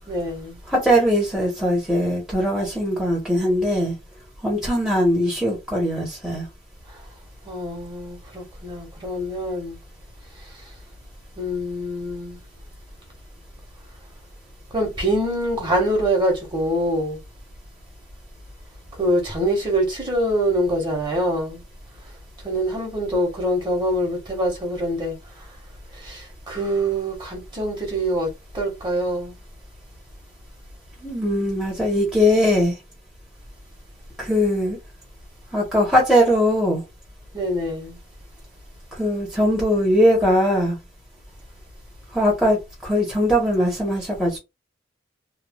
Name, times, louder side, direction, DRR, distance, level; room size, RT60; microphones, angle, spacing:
voice 1, 0.1-0.6 6.9-7.0 7.4-9.8 11.3-12.4 14.7-17.2 19.0-21.6 22.4-25.2 26.0-29.4 37.3-38.0, equal, 25° right, 1.2 m, -24 dB
voice 2, 0.7-4.0 4.4-6.5 31.0-32.7 34.2-34.8 35.5-36.8 38.9-40.8 42.1-44.4, equal, 5° right, 0.9 m, -20 dB
3.0 x 2.3 x 2.3 m
head